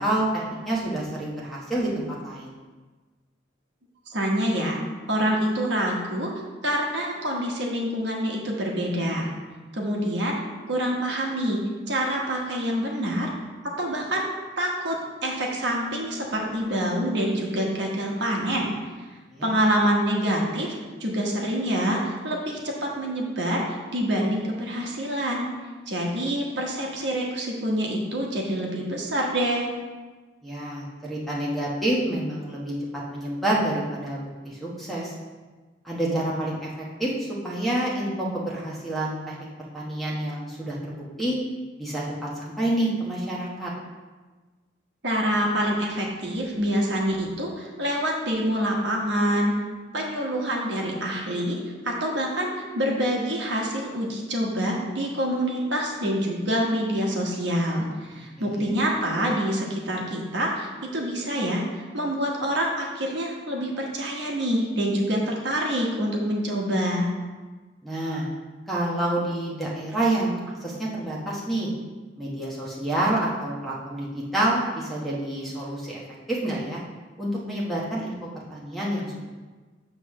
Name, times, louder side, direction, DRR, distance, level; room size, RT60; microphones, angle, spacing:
voice 1, 0.0-2.5 19.3-19.5 30.4-32.7 33.1-35.1 35.8-39.4 39.7-41.4 41.8-43.7 58.4-58.7 67.8-68.3 68.7-71.7 72.2-76.0 76.3-76.8 77.2-79.2, right 1 dB, ahead, -6 dB, 1.1 m, -28 dB
voice 2, 4.1-4.8 5.1-6.3 6.6-9.3 9.7-10.4 10.7-13.3 13.8-14.2 14.6-18.7 19.4-20.7 21.0-25.5 25.9-29.7 45.0-49.6 49.9-67.1, equal, 65° right, -1 dB, 1.2 m, -26 dB
7.8 x 3.2 x 6.3 m, 1.3 s
head